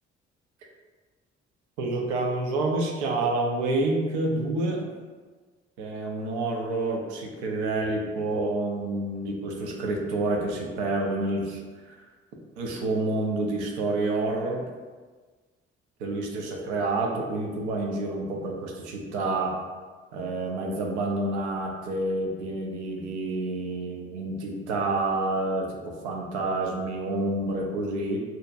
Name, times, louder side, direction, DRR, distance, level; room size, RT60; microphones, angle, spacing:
voice 1, 1.8-4.8 5.8-11.6 11.9-12.0 12.6-14.7 16.0-19.5 20.1-28.2, right 2 dB, 75° right, 0 dB, 0.5 m, -28 dB
2.7 x 2.1 x 2.4 m, 1.4 s
figure-of-eight pair, 45°, 34 cm